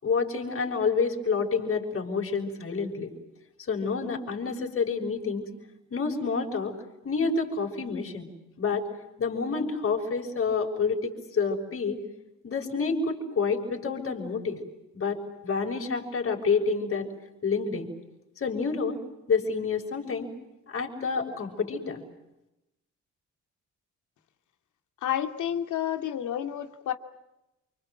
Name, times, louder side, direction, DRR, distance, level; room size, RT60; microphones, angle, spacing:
voice 1, 0.0-3.1 3.7-5.5 5.9-6.7 7.0-8.3 8.6-8.9 9.2-12.0 12.4-14.6 14.9-17.1 17.4-17.9 18.4-19.0 19.3-20.3 20.7-22.0, left 5 dB, 45° left, 0 dB, 6.3 m, -28 dB
voice 2, 25.0-26.9, left 10 dB, 75° left, 5 dB, 2.6 m, -30 dB
28.5 x 26.0 x 7.9 m, 0.92 s
cardioid pair, 90°, 30 cm